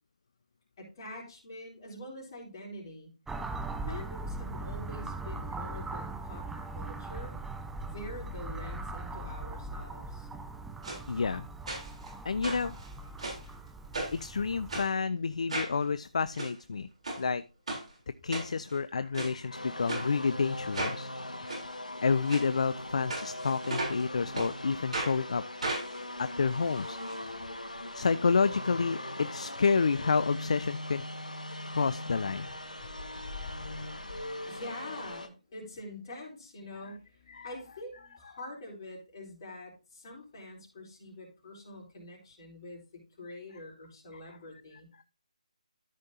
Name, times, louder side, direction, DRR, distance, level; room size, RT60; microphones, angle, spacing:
voice 1, 0.8-3.1 3.9-7.3 7.8-10.3 33.9-44.9, left 1 dB, 35° left, -2 dB, 4.3 m, -45 dB
sound 1, 3.3-14.9, right 2 dB, 5° right, 0.5 m, -40 dB
sound 2, 10.8-11.0 11.7-12.1 12.4-13.5 13.9-14.3 14.7-14.9 15.5-15.8 16.2-16.5 17.0-17.2 17.7-17.8 18.3-18.8 19.1-19.3 19.9-20.0 20.7-21.0 21.5-21.6 22.2-22.4 23.1-24.0 24.3-24.5 24.9-25.1 25.6-27.1 27.4-27.5 27.8-27.9, right 2 dB, 60° right, 3.7 m, -35 dB
voice 2, 11.1-11.5 12.2-12.8 14.1-16.9 17.2-17.4 18.2-21.1 22.0-25.4 26.2-27.0 27.9-31.0 31.7-32.5 37.3-37.5 44.1-44.4, left 5 dB, 60° left, 14 dB, 0.4 m, -29 dB
sound 3, 19.5-35.3, left 1 dB, 85° left, 1.4 m, -40 dB
13.5 x 5.3 x 2.8 m, 0.32 s
figure-of-eight pair, 150°, 4 cm